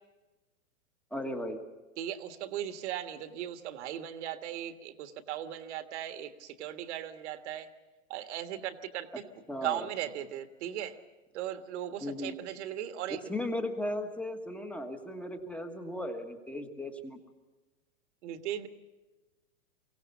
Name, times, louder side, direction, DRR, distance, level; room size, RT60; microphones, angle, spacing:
voice 1, 1.1-1.6 9.5-9.9 12.0-12.4 13.3-17.2, left 1 dB, 5° left, 6 dB, 1.4 m, -36 dB
voice 2, 2.0-7.7 8.1-9.2 9.6-11.0 11.3-13.2 18.2-18.7, right 11 dB, 55° right, 8 dB, 1.6 m, -38 dB
23.5 x 17.0 x 7.2 m, 1.2 s
hypercardioid pair, 130°, 40 cm